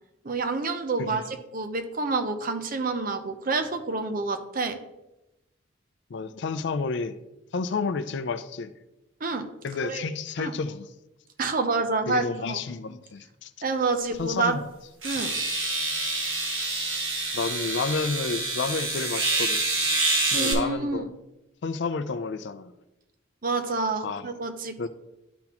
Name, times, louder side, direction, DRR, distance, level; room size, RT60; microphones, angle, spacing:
voice 1, 0.2-4.8 9.2-9.5 9.8-10.0 10.4-10.5 11.4-12.6 13.6-14.6 15.0-15.3 20.3-21.1 23.4-24.9, right 3 dB, 45° right, 0.6 m, -28 dB
voice 2, 6.1-7.2 7.5-8.7 9.6-10.9 12.1-13.5 14.2-14.6 15.2-15.4 17.3-19.6 20.3-21.1 21.6-22.7 24.0-24.3 24.8-24.9, left 4 dB, 60° left, 0.4 m, -30 dB
sound 1, 14.1-14.2 15.0-20.5, right 2 dB, 80° right, 1.5 m, -27 dB
11.5 x 4.0 x 2.9 m
head